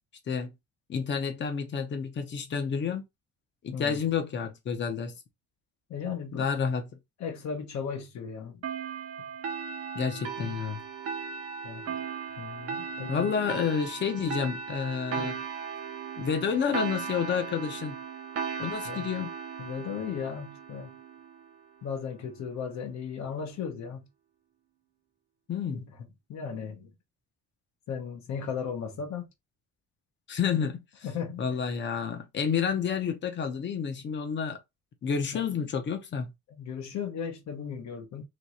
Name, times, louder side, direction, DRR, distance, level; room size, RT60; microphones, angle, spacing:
voice 1, 0.9-3.0 3.6-5.1 6.3-6.9 9.9-10.8 13.1-15.3 16.2-18.0 18.6-19.3 25.5-25.8 30.3-30.8 31.4-34.6 35.0-36.3, left 6 dB, 35° left, 0.9 m, -29 dB
voice 2, 5.9-6.5 7.2-8.6 9.2-9.3 10.4-10.6 11.6-12.0 12.4-13.4 15.1-15.4 18.8-19.0 19.6-21.0 21.8-24.1 25.7-25.9 26.3-26.9 27.9-29.2 31.0-31.5 35.3-35.4 36.5-38.2, left 6 dB, 65° left, 1.2 m, -36 dB
sound 1, 8.6-21.7, right 6 dB, 55° right, 0.8 m, -37 dB
3.2 x 3.0 x 4.2 m
cardioid pair, 180°, 30 cm